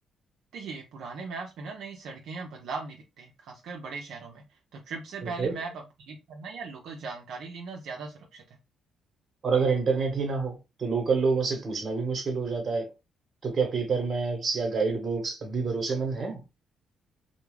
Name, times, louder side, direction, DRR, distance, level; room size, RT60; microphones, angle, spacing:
voice 1, 0.5-8.4, right 4 dB, 75° right, 0.5 m, -39 dB
voice 2, 5.2-5.5 9.4-12.9 13.4-16.4, right 4 dB, 45° right, 1.0 m, -27 dB
2.3 x 2.1 x 3.1 m
cardioid pair, 90°, 0 cm